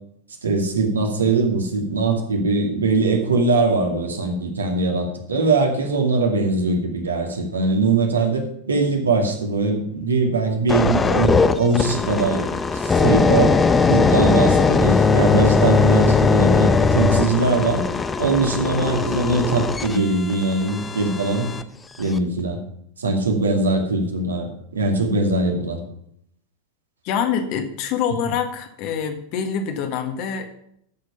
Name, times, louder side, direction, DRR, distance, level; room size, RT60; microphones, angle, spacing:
voice 1, 0.4-13.6 13.9-17.8 18.2-21.5 22.0-22.6 23.0-25.8, right 3 dB, 70° right, 2 dB, 2.4 m, -21 dB
sound 1, 10.7-21.6 22.2-22.4, left 4 dB, 15° left, 0.7 m, -19 dB
voice 2, 27.0-30.5, left 7 dB, 45° left, 6 dB, 1.6 m, -25 dB
13.5 x 6.7 x 5.7 m, 0.72 s
figure-of-eight pair, 90°, 0 cm